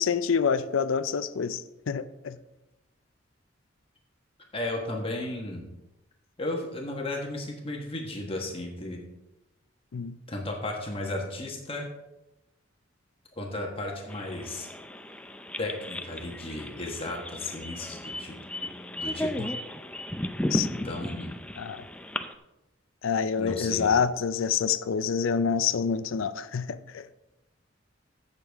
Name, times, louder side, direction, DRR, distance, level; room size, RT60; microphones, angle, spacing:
voice 1, 0.0-1.6 1.9-2.4 9.9-10.1 20.5-20.9 21.6-21.8 23.0-27.1, left 6 dB, 90° left, 14 dB, 0.5 m, -27 dB
voice 2, 4.5-5.7 6.4-9.0 10.3-11.9 13.4-14.7 15.6-18.3 18.6-18.7 19.0-19.5 20.6-21.3 23.4-23.9, left 2 dB, 30° left, 0 dB, 1.3 m, -34 dB
sound 1, 14.1-22.3, left 1 dB, 5° left, 0.5 m, -35 dB
15.0 x 6.8 x 3.5 m, 0.97 s
head